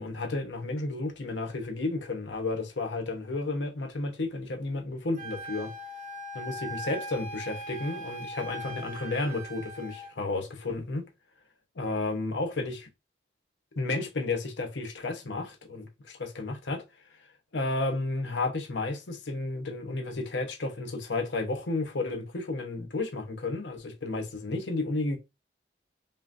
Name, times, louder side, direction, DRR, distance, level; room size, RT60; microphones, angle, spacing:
voice 1, 0.0-5.7 6.3-11.0 11.8-12.9 13.8-16.8 17.5-25.2, left 2 dB, 75° left, 0.8 m, -32 dB
Wind instrument woodwind instrument, 5.2-10.1, right 1 dB, 40° right, 0.8 m, -40 dB
5.4 x 2.5 x 2.6 m
head